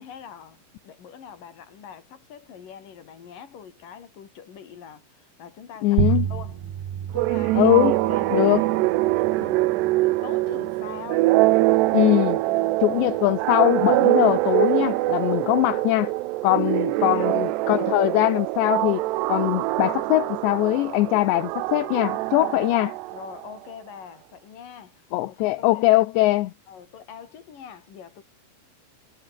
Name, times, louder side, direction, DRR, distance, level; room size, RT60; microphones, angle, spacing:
voice 1, 0.0-6.6 7.0-8.9 9.1-11.3 12.5-12.8 15.3-15.5 16.4-17.3 23.1-26.2 26.7-28.2, left 8 dB, 50° left, 4.6 m, -44 dB
voice 2, 5.8-6.3 7.6-8.0 8.3-8.6 11.9-12.4 12.8-16.1 16.4-19.0 19.3-23.0 25.1-26.5, left 18 dB, 75° left, 3.0 m, -21 dB
sound 1, 6.0-11.0, right 9 dB, 60° right, 4.0 m, -30 dB
sound 2, 7.2-23.5, right 18 dB, 75° right, 2.6 m, -23 dB
omnidirectional pair, 5.5 m